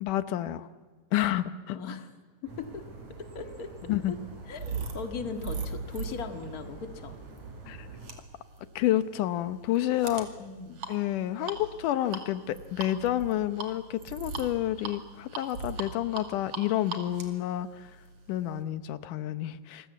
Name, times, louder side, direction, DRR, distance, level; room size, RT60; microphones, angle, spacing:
voice 1, 0.0-0.7 1.1-1.8 3.9-4.1 7.7-7.9 8.8-10.3 10.9-17.9 18.3-19.9, left 13 dB, 90° left, 13 dB, 2.5 m, -29 dB
voice 2, 1.7-2.1 2.4-2.8 3.3-4.2 4.5-7.1 10.4-10.8, left 5 dB, 35° left, 6 dB, 1.8 m, -39 dB
sound 1, 2.4-8.1, right 4 dB, 70° right, 4.8 m, -46 dB
sound 2, 3.0-18.6, right 4 dB, 50° right, 3.2 m, -41 dB
27.0 x 21.0 x 8.3 m, 1.4 s
omnidirectional pair, 3.6 m